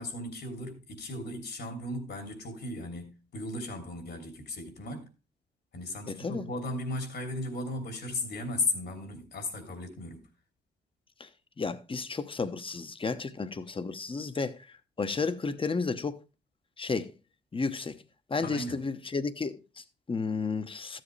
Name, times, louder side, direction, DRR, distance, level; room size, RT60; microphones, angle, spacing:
voice 1, 0.0-5.1 5.7-10.3 18.4-18.8, left 2 dB, 70° left, 3.0 m, -36 dB
voice 2, 6.1-6.5 11.2-11.3 11.6-14.7 15.0-16.2 16.8-17.1 17.5-18.0 18.3-21.0, left 4 dB, 30° left, 1.1 m, -32 dB
13.5 x 7.7 x 3.3 m
cardioid pair, 65°, 18 cm